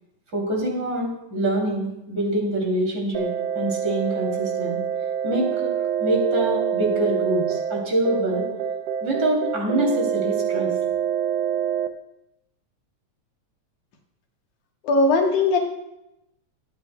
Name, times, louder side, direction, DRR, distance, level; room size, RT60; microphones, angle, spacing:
voice 1, 0.3-4.8 5.2-5.7 6.0-8.5 9.0-10.7, right 1 dB, 35° right, -1 dB, 3.1 m, -25 dB
sound 1, 3.1-11.9, right 9 dB, 75° right, 1.5 m, -26 dB
voice 2, 14.8-15.6, left 3 dB, 85° left, 1 dB, 2.9 m, -19 dB
21.5 x 8.9 x 2.2 m, 0.88 s
omnidirectional pair, 3.4 m